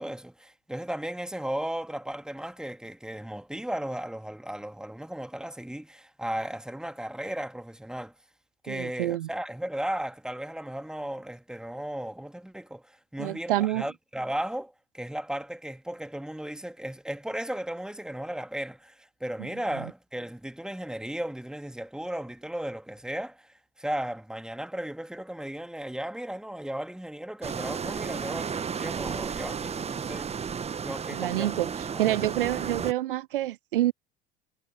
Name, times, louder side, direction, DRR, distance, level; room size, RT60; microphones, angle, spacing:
voice 1, 0.0-8.1 8.6-30.3 30.8-31.5 31.9-32.2, right 1 dB, ahead, 2.5 m, -35 dB
voice 2, 8.7-9.3 13.2-13.8 31.1-33.9, right 14 dB, 65° right, 0.5 m, -27 dB
sound 1, 27.4-32.9, right 6 dB, 20° right, 1.5 m, -33 dB
figure-of-eight pair, 70°, 29 cm